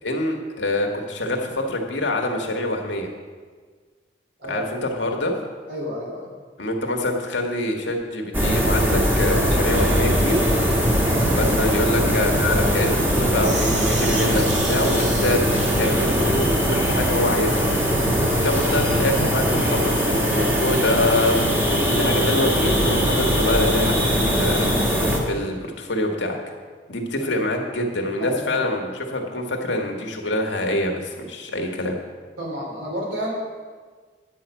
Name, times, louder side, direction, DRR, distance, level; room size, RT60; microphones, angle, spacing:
voice 1, 0.0-3.1 4.5-5.3 6.6-10.4 11.3-15.4 15.8-17.7 18.4-26.4 26.9-32.0, left 1 dB, 90° left, 2 dB, 1.5 m, -25 dB
voice 2, 5.7-6.3 11.0-11.3 27.2-27.4 28.2-28.7 32.4-33.3, equal, 80° right, -3 dB, 3.3 m, -31 dB
sound 1, 8.3-25.2, equal, 10° right, 1.4 m, -21 dB
Sink (filling or washing), 10.3-18.4, right 2 dB, 40° right, 1.8 m, -35 dB
9.4 x 5.8 x 8.2 m, 1.5 s
head